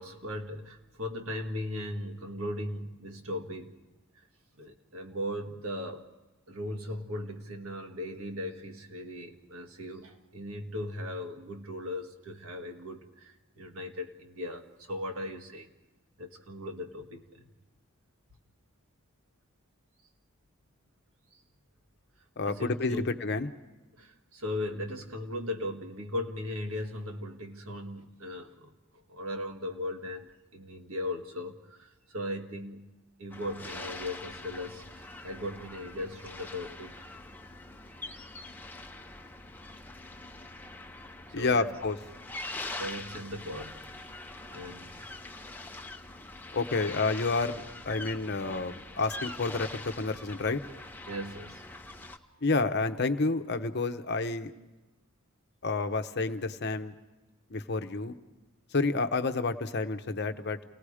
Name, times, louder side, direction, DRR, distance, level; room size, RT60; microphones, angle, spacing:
voice 1, 0.0-3.8 4.2-4.3 4.6-6.1 6.5-15.7 16.2-17.5 21.3-21.4 22.4-23.1 24.0-28.8 29.1-32.8 33.2-37.1 41.3-41.7 42.7-44.2 44.5-45.1 51.1-51.7, left 1 dB, 80° right, 3 dB, 1.8 m, -38 dB
voice 2, 22.4-23.5 41.3-42.0 46.5-50.6 52.4-54.5 55.6-56.9 57.5-58.1 58.7-60.6, left 3 dB, 50° left, 8 dB, 0.9 m, -29 dB
sound 1, 33.3-52.2, left 2 dB, 10° left, 0.8 m, -43 dB
29.0 x 18.5 x 5.0 m, 1.1 s
head